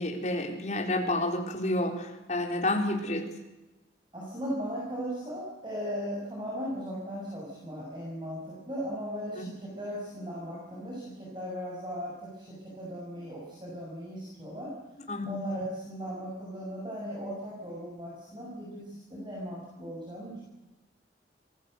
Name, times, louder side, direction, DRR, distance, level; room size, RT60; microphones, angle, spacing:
voice 1, 0.0-3.2 9.4-9.5 15.1-15.4, left 1 dB, 40° left, 3 dB, 4.1 m, -30 dB
voice 2, 4.1-14.7 15.3-20.4, equal, 25° right, -4 dB, 7.2 m, -37 dB
26.5 x 19.5 x 8.0 m, 1.0 s
head